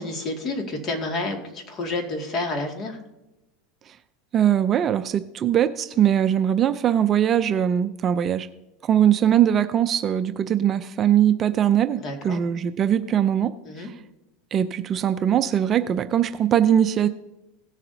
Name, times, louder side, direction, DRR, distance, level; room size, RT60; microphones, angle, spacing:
voice 1, 0.0-3.0 12.0-12.4 13.6-13.9, left 2 dB, 35° left, 3 dB, 2.1 m, -29 dB
voice 2, 4.3-8.5 8.8-13.5 13.8-13.9 14.5-17.1, right 10 dB, 30° right, 11 dB, 0.5 m, -21 dB
17.5 x 7.2 x 2.7 m, 0.94 s
supercardioid pair, 125°, 0 cm